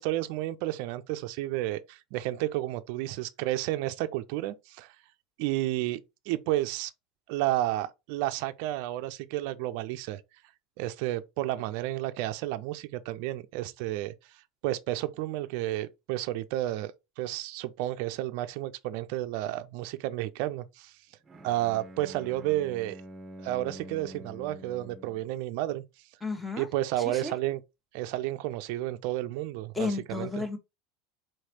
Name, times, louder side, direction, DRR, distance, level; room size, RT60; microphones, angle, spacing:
voice 1, 0.0-5.0 5.4-6.0 6.3-6.9 7.3-10.2 10.8-21.0 21.4-23.0 23.4-25.8 26.6-27.6 27.9-30.4, right 15 dB, 65° right, 0.4 m, -31 dB
Bowed string instrument, 21.3-25.3, equal, 20° right, 0.8 m, -46 dB
voice 2, 26.2-26.7 27.0-27.3 29.7-30.6, left 3 dB, 10° left, 1.2 m, -32 dB
4.4 x 3.1 x 2.9 m
supercardioid pair, 105°, 0 cm